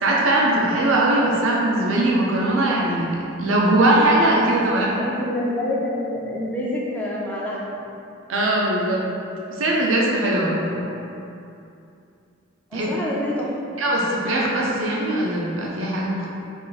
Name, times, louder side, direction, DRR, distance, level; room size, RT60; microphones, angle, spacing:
voice 1, 0.0-4.9 8.3-9.1 9.5-10.9 12.7-12.9 13.8-16.3, right 1 dB, 70° right, -3 dB, 0.6 m, -20 dB
voice 2, 4.6-7.7 10.8-11.0 12.7-13.5, left 1 dB, 10° left, -6 dB, 0.4 m, -27 dB
3.6 x 2.5 x 3.8 m, 2.6 s
head